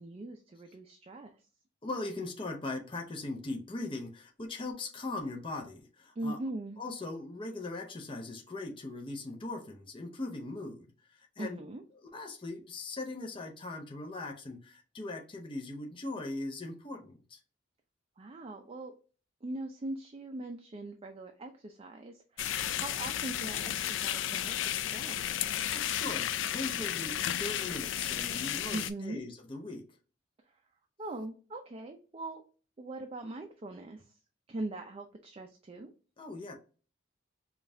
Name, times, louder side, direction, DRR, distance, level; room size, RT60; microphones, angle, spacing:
voice 1, 0.0-1.3 6.2-6.8 11.4-11.8 18.2-18.9 19.4-25.3 28.7-29.2 31.0-32.4 32.8-34.0 34.5-35.9, right 2 dB, 30° right, 0.4 m, -41 dB
voice 2, 1.8-6.4 6.8-11.6 12.0-17.4 25.7-29.8 36.2-36.5, left 2 dB, 25° left, 0.6 m, -40 dB
sound 1, 22.4-28.9, left 11 dB, 70° left, 0.3 m, -33 dB
5.1 x 2.4 x 2.7 m
head